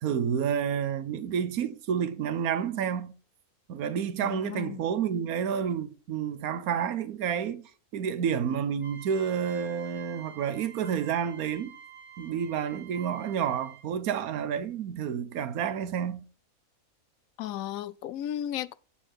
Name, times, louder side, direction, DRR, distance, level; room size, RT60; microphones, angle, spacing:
voice 1, 0.0-3.1 3.7-7.6 7.9-11.7 12.2-16.3, right 8 dB, 80° right, 1.3 m, -30 dB
voice 2, 4.2-4.8 17.4-18.7, left 11 dB, 75° left, 1.0 m, -34 dB
sound 1, 8.8-14.0, right 7 dB, 25° left, 3.5 m, -49 dB
8.6 x 7.1 x 4.3 m
omnidirectional pair, 1.5 m